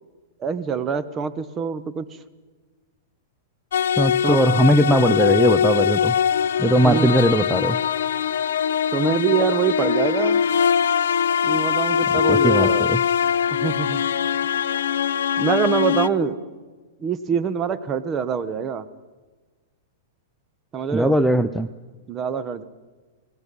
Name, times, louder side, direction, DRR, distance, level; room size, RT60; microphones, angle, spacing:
voice 1, 0.4-2.1 4.2-4.4 6.8-7.1 8.9-10.4 11.4-12.9 13.5-14.0 15.4-16.4 17.0-18.9 20.7-21.2 22.1-22.6, right 6 dB, 25° right, 12 dB, 1.2 m, -24 dB
sound 1, 3.7-16.1, left 8 dB, 80° left, 0.9 m, -22 dB
voice 2, 4.0-6.2 6.6-7.8 12.1-13.0 20.9-21.7, equal, ahead, 11 dB, 0.6 m, -19 dB
29.0 x 19.0 x 5.5 m, 1.3 s
hypercardioid pair, 135°, 0 cm